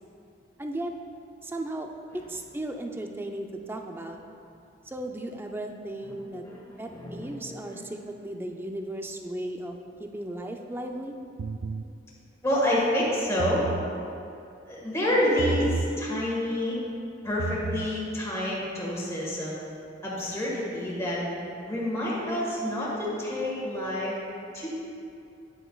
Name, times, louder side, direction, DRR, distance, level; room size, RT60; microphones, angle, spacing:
voice 1, 0.6-0.9 1.4-1.9 2.3-4.2 4.9-6.4 6.8-11.1, right 1 dB, 10° right, 4 dB, 0.4 m, -36 dB
voice 2, 6.4-7.8 12.4-13.6 14.7-16.8 17.2-19.5 20.0-21.2 21.7-24.1 24.5-24.7, left 1 dB, 15° left, -6 dB, 1.6 m, -28 dB
sound 1, 11.4-11.9 13.3-13.9 15.4-15.9 17.3-17.9, right 3 dB, 80° right, 0.3 m, -31 dB
10.0 x 7.6 x 2.3 m, 2.6 s
head